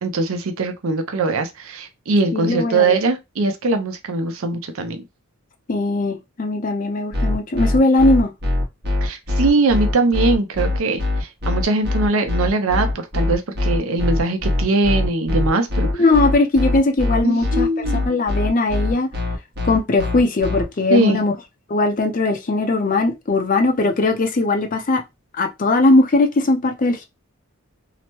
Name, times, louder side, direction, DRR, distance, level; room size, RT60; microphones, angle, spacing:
voice 1, 0.0-5.0 9.0-16.0 17.2-18.1 20.9-21.2, right 3 dB, 65° right, 0.6 m, -21 dB
voice 2, 2.3-3.0 5.7-8.3 16.0-17.7 18.1-19.1 19.6-21.3 21.7-25.0 25.4-27.0, left 2 dB, 40° left, 0.5 m, -19 dB
sound 1, 7.1-20.6, left 2 dB, 50° right, 1.0 m, -22 dB
2.8 x 2.1 x 2.9 m
head